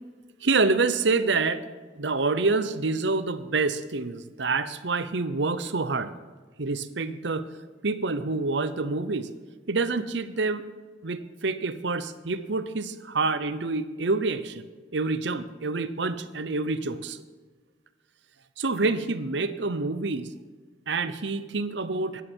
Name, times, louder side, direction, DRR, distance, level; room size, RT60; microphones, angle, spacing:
voice 1, 0.4-1.6 2.0-6.1 6.6-7.4 7.8-9.3 9.7-10.6 11.0-14.7 14.9-17.2 18.6-20.3 20.9-22.2, right 3 dB, 70° right, 12 dB, 0.8 m, -27 dB
14.0 x 11.0 x 4.5 m, 1.4 s
head